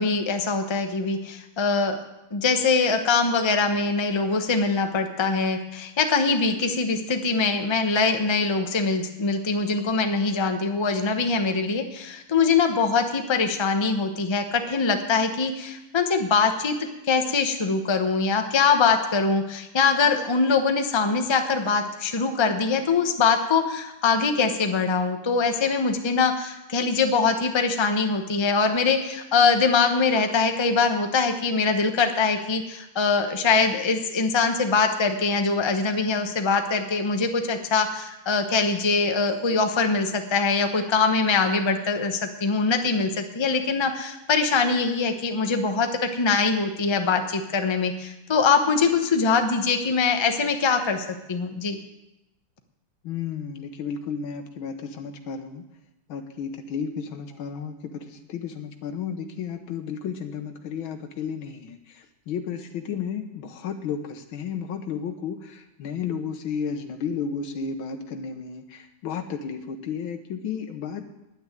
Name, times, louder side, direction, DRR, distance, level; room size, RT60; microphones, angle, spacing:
voice 1, 0.0-2.0 2.3-16.8 17.0-51.8, left 4 dB, 25° left, 6 dB, 0.6 m, -23 dB
voice 2, 53.0-55.7 56.1-71.1, left 6 dB, 90° left, 6 dB, 1.8 m, -33 dB
9.7 x 9.4 x 9.1 m, 0.94 s
omnidirectional pair, 2.2 m